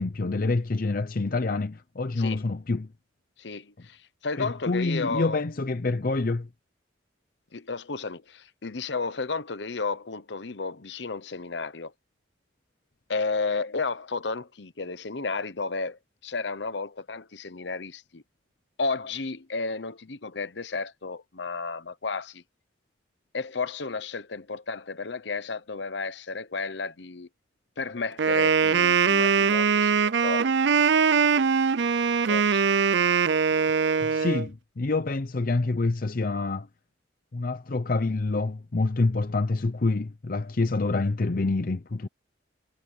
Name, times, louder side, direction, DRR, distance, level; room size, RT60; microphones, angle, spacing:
voice 1, 0.0-2.9 4.4-6.5 34.0-36.7 37.3-42.1, left 3 dB, 50° left, 0.6 m, -27 dB
voice 2, 3.4-5.4 7.5-11.9 13.1-18.2 18.8-22.4 23.3-27.3 27.8-30.4 32.3-32.7, left 4 dB, 65° left, 1.0 m, -32 dB
Wind instrument woodwind instrument, 28.2-34.5, right 6 dB, 65° right, 0.5 m, -22 dB
head